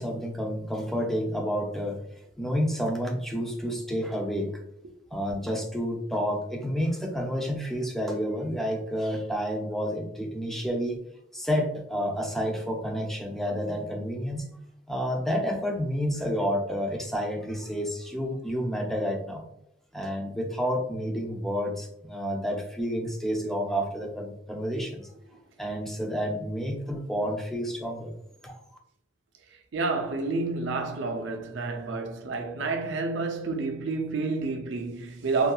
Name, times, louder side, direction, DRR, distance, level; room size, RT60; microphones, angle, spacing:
voice 1, 0.0-2.0 2.4-4.6 5.1-11.0 11.3-14.4 14.9-19.4 19.9-25.1 25.6-28.1 28.4-28.6, equal, ahead, 0.4 m, -30 dB
voice 2, 29.7-35.5, right 3 dB, 70° right, 0.4 m, -29 dB
2.7 x 2.3 x 2.3 m
head